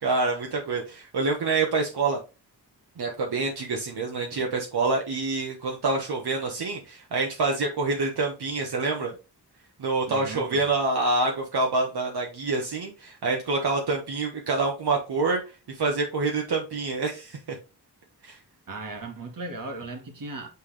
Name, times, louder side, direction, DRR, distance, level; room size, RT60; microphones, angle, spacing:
voice 1, 0.0-2.2 3.0-9.1 9.8-15.4 15.7-17.6 18.2-18.4, right 3 dB, 70° right, 1.2 m, -26 dB
voice 2, 10.1-10.7 18.7-20.5, right 2 dB, 55° right, 1.5 m, -37 dB
8.1 x 3.5 x 3.4 m
wide cardioid pair, 180°, 40 cm